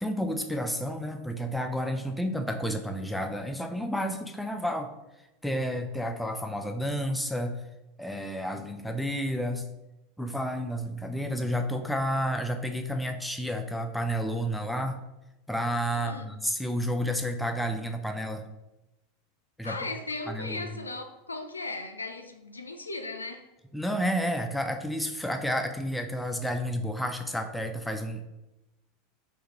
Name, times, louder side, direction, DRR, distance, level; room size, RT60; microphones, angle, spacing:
voice 1, 0.0-4.9 5.4-7.6 8.0-9.6 10.2-15.0 15.5-18.5 19.6-19.8 20.3-20.7 23.7-28.3, equal, 5° left, 0.4 m, -31 dB
voice 2, 15.9-16.3 19.6-23.5, left 2 dB, 80° left, 0.3 m, -37 dB
3.5 x 2.6 x 2.9 m
figure-of-eight pair, 80°, 0 cm